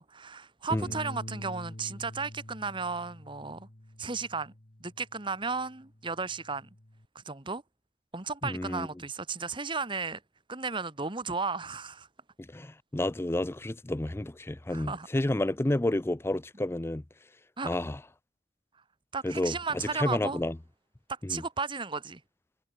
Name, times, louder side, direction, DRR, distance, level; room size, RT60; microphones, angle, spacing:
voice 1, 0.0-3.7 4.0-4.5 4.8-6.7 7.1-7.6 8.1-10.2 10.5-12.1 14.7-15.1 17.6-17.7 19.1-20.4 21.1-22.2, right 4 dB, 25° right, 1.5 m, -34 dB
Bass guitar, 0.8-5.3 5.7-7.1, left 1 dB, 45° left, 2.0 m, -46 dB
voice 2, 8.4-8.9 12.4-17.0 17.6-18.0 19.2-20.6 21.2-21.4, left 1 dB, 15° left, 0.5 m, -30 dB
head